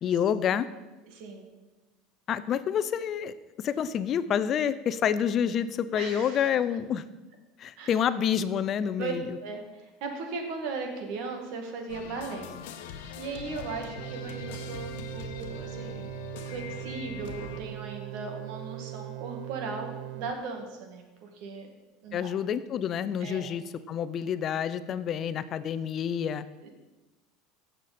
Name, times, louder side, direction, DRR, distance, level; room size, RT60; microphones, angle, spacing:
voice 1, 0.0-0.7 2.3-7.0 7.6-9.2 22.1-26.4, left 8 dB, 40° left, 14 dB, 0.5 m, -28 dB
voice 2, 1.0-1.5 5.9-6.5 7.8-8.0 9.0-9.1 9.4-12.5 13.2-16.1 16.4-21.7 22.0-22.3 23.2-23.5 26.6-26.7, right 4 dB, 65° right, 3 dB, 2.1 m, -37 dB
sound 1, 11.9-17.6, left 7 dB, 85° left, 1.0 m, -42 dB
sound 2, 14.0-20.3, right 16 dB, 85° right, 0.6 m, -40 dB
16.0 x 6.7 x 4.3 m, 1.1 s
supercardioid pair, 130°, 0 cm